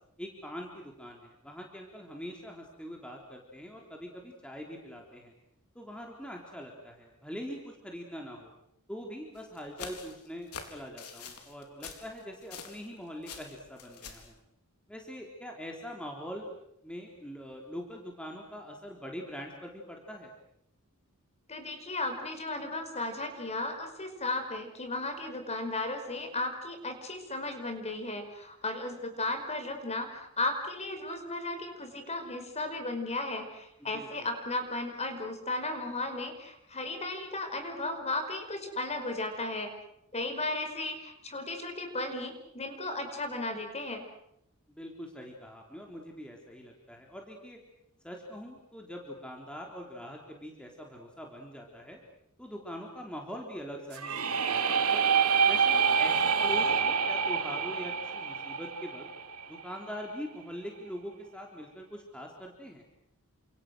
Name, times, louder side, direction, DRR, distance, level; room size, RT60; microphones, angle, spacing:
voice 1, 0.2-5.3 5.8-8.5 8.9-14.4 14.9-16.5 16.8-20.3 33.8-34.3 44.7-47.6 48.0-52.0 52.4-55.1 55.5-59.1 59.5-62.8, equal, 5° left, 0 dB, 3.7 m, -43 dB
sound 1, 9.3-12.9 13.2-14.3, left 6 dB, 90° left, 4.2 m, -45 dB
voice 2, 21.5-39.7 40.1-44.0, left 2 dB, 30° left, 6 dB, 5.1 m, -35 dB
sound 2, 53.9-59.8, right 6 dB, 75° right, 3.2 m, -27 dB
30.0 x 27.5 x 6.4 m, 0.76 s
head